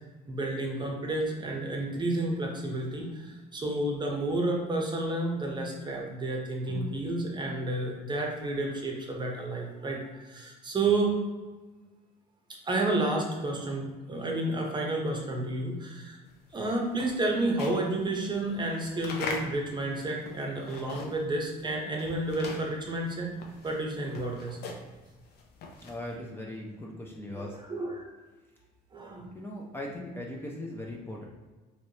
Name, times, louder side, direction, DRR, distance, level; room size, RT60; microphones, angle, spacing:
voice 1, 0.3-11.2 12.6-16.2 16.5-23.3 23.6-24.6 27.3-28.1 28.9-29.3, right 2 dB, 25° right, 0 dB, 0.7 m, -31 dB
sound 1, 16.4-21.4 21.7-26.1, left 3 dB, 70° left, 0.6 m, -42 dB
voice 2, 25.8-27.6 29.3-31.2, left 1 dB, 15° left, -3 dB, 0.5 m, -39 dB
3.1 x 3.0 x 2.8 m, 1.3 s
cardioid pair, 110°, 17 cm